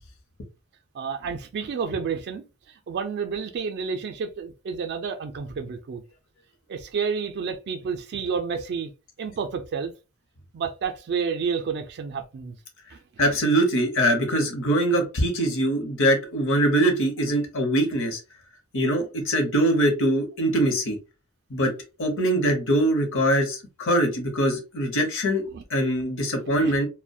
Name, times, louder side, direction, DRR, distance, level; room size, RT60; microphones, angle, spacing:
voice 1, 0.9-6.0 6.7-8.9 9.2-9.9 10.5-12.6 12.9-13.4 25.5-25.6 26.5-26.8, right 6 dB, 50° right, 0.3 m, -30 dB
voice 2, 13.2-18.2 18.7-21.0 21.5-21.7 22.0-25.4 25.7-26.9, right 1 dB, 65° left, 0.8 m, -23 dB
2.3 x 2.1 x 2.6 m
head